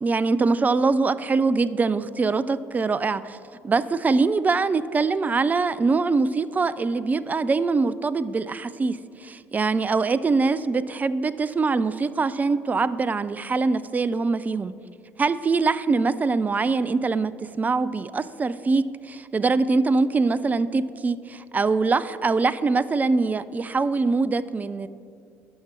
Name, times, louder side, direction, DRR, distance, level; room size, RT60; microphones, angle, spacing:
voice 1, 0.0-3.4 3.6-14.7 15.2-24.9, right 4 dB, 20° right, 16 dB, 0.4 m, -23 dB
12.0 x 5.9 x 4.5 m, 2.3 s
figure-of-eight pair, 55°, 8 cm